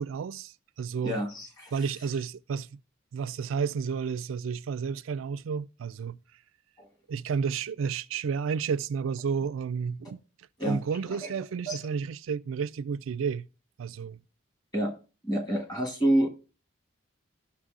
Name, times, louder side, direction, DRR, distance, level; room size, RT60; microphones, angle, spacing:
voice 1, 0.0-1.2 1.7-2.7 3.1-6.2 7.1-10.2 10.7-13.5 13.8-14.2, right 6 dB, 80° right, 0.4 m, -31 dB
voice 2, 1.0-1.7 6.8-6.9 10.6-10.8 11.1-11.3 11.7-11.8 14.7-15.0 15.2-16.3, right 1 dB, 20° left, 1.3 m, -28 dB
14.0 x 6.0 x 2.4 m
head